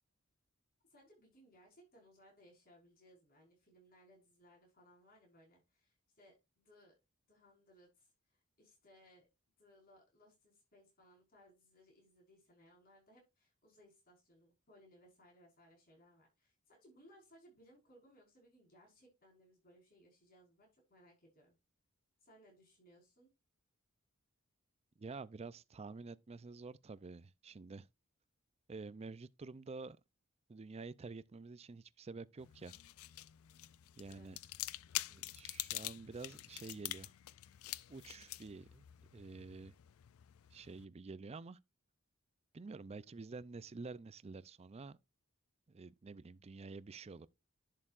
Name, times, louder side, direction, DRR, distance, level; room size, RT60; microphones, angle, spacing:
voice 1, 0.9-6.9 7.3-9.3 9.6-21.5 22.2-23.3 34.1-34.5, equal, 45° left, 5.0 m, -65 dB
voice 2, 25.0-27.9 28.7-30.0 30.5-32.8 34.0-34.4 35.0-37.1 37.9-38.9 39.1-39.7 40.5-41.6 42.5-45.0 45.7-47.3, right 4 dB, 30° right, 0.4 m, -49 dB
sound 1, 32.4-40.9, left 16 dB, 85° left, 0.4 m, -46 dB
11.0 x 6.7 x 2.5 m
head